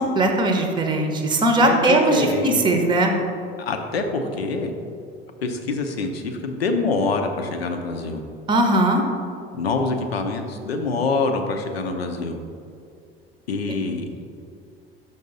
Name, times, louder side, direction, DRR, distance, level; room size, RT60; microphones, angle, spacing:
voice 1, 0.0-3.1 8.5-9.0, right 1 dB, 15° right, 4 dB, 0.7 m, -19 dB
voice 2, 1.6-2.6 3.6-4.7 5.4-8.2 9.5-12.4 13.5-14.1, left 3 dB, 75° left, 5 dB, 0.6 m, -25 dB
5.4 x 5.3 x 3.8 m, 2.4 s
figure-of-eight pair, 65°, 31 cm